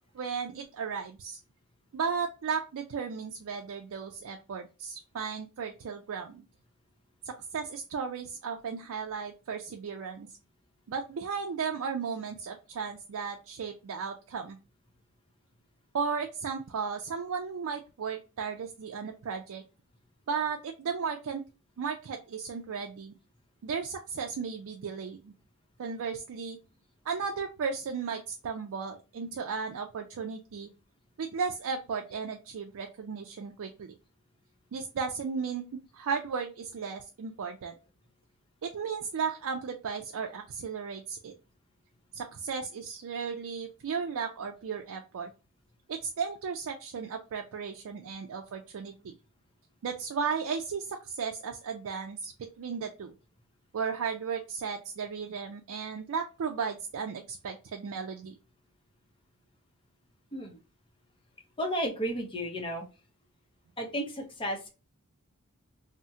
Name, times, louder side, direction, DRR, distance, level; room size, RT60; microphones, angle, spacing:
voice 1, 0.1-1.4 1.9-6.4 7.2-10.3 10.9-14.6 15.9-19.6 20.3-21.4 21.8-23.1 23.6-25.3 25.8-26.6 27.1-30.7 31.2-33.9 34.7-35.6 35.9-37.7 38.6-41.3 42.1-45.3 45.9-49.1 49.8-53.1 53.7-58.3, right 6 dB, 70° right, 3 dB, 0.4 m, -35 dB
voice 2, 61.6-62.8 63.8-64.7, equal, 25° left, 3 dB, 0.6 m, -33 dB
2.8 x 2.0 x 3.5 m, 0.30 s
head